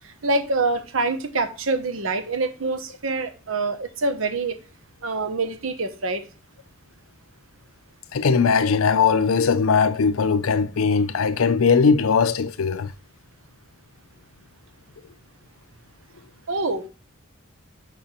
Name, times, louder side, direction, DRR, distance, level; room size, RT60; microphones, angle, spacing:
voice 1, 0.2-4.6 5.0-6.2 16.5-16.9, right 3 dB, 75° right, 1.0 m, -25 dB
voice 2, 8.1-12.9, left 5 dB, 85° left, 0.5 m, -19 dB
6.0 x 4.3 x 5.7 m
head